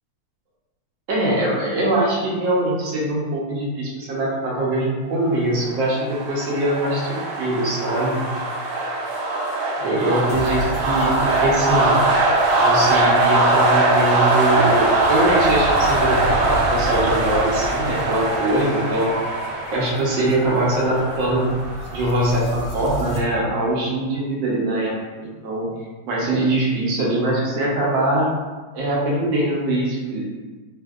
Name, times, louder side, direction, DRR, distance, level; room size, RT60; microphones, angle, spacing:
voice 1, 1.1-8.2 9.8-12.3 12.6-19.1 19.7-21.5 21.9-25.7 26.0-28.3 28.7-30.4, right 1 dB, 70° right, -4 dB, 1.3 m, -22 dB
sound 1, 5.6-22.3, right 2 dB, 85° right, 1.5 m, -21 dB
sound 2, 10.3-23.2, right 1 dB, 80° left, 0.9 m, -34 dB
3.5 x 2.7 x 2.3 m, 1.3 s
omnidirectional pair, 2.4 m